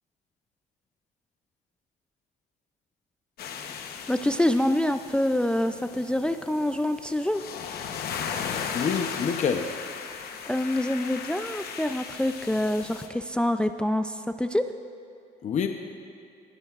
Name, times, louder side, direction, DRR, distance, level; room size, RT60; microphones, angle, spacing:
sound 1, 3.4-13.1, left 6 dB, 70° left, 1.0 m, -37 dB
voice 1, 4.1-7.4 10.5-14.7, left 1 dB, 5° left, 9 dB, 0.3 m, -26 dB
voice 2, 8.7-9.8 15.4-15.7, left 6 dB, 45° left, 5 dB, 0.7 m, -26 dB
19.0 x 12.5 x 2.4 m, 2.5 s
cardioid pair, 110°, 17 cm